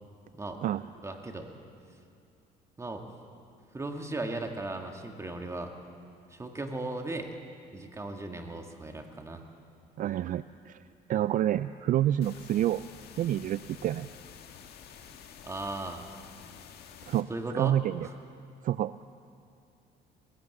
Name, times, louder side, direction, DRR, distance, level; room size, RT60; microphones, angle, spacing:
voice 1, 1.0-1.5 2.8-3.0 3.7-5.7 6.3-7.3 7.7-9.4 15.4-16.1 17.3-18.1, right 2 dB, 15° right, 4 dB, 2.0 m, -37 dB
voice 2, 10.0-10.8 11.1-12.8 13.2-14.1 17.0-17.3 17.5-18.1 18.6-19.0, right 12 dB, 50° right, 15 dB, 0.4 m, -28 dB
sound 1, 12.2-17.2, left 8 dB, 70° left, 1.7 m, -50 dB
20.0 x 17.0 x 7.9 m, 2.4 s
cardioid pair, 110°, 17 cm